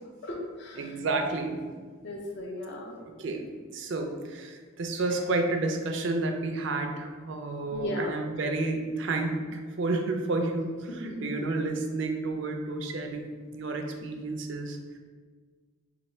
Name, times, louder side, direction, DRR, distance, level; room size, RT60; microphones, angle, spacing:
voice 1, 0.2-0.8 2.0-2.9 7.7-8.1 11.0-11.3, left 1 dB, 55° left, -1 dB, 0.5 m, -35 dB
voice 2, 0.8-1.6 3.2-15.0, right 2 dB, 55° right, 4 dB, 0.4 m, -31 dB
3.3 x 2.3 x 4.2 m, 1.5 s
head